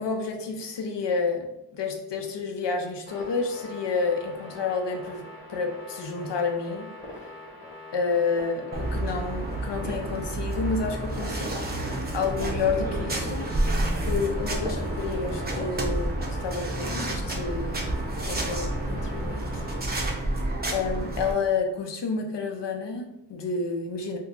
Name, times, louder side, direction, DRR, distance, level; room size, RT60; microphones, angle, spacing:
voice 1, 0.0-5.2 5.5-6.9 7.9-11.6 12.1-19.5 20.7-24.2, left 4 dB, 70° left, 3 dB, 0.6 m, -30 dB
sound 1, 3.1-19.8, left 1 dB, 20° left, 1.0 m, -43 dB
sound 2, 8.7-21.3, right 1 dB, 20° right, 0.6 m, -29 dB
2.7 x 2.3 x 3.7 m, 0.85 s
wide cardioid pair, 105°, 44 cm